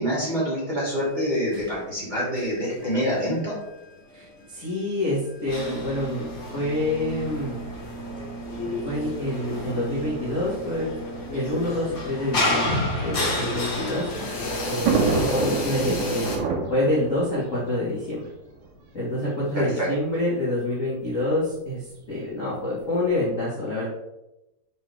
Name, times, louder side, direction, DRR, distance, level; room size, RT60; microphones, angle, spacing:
voice 1, 0.0-3.5 19.8-19.9, equal, 15° right, -7 dB, 1.8 m, -26 dB
sound 1, 0.9-8.0 8.3-9.6 10.5-10.6 10.9-16.4, left 2 dB, 70° left, 1.3 m, -36 dB
voice 2, 4.1-6.3 6.5-7.6 8.6-10.9 11.3-14.1 14.7-16.3 16.7-18.3 18.9-23.9, left 1 dB, 85° left, -8 dB, 0.7 m, -27 dB
sound 2, 5.5-15.6, left 1 dB, 45° left, 1.1 m, -31 dB
Thunder, 13.4-18.7 19.6-19.7 19.9-20.0 21.1-21.4, right 5 dB, 70° right, 2.5 m, -28 dB
7.5 x 4.5 x 3.4 m, 0.91 s
omnidirectional pair, 4.2 m